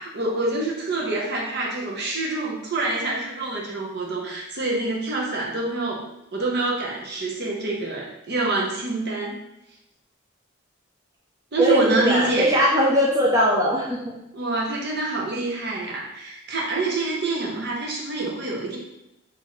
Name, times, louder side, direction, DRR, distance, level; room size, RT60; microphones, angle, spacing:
voice 1, 0.0-6.0 6.3-9.4 11.5-12.5 14.3-18.8, right 2 dB, 55° right, -3 dB, 0.8 m, -26 dB
voice 2, 11.6-14.1, equal, 15° right, -5 dB, 0.5 m, -20 dB
4.0 x 2.7 x 3.1 m, 0.88 s
head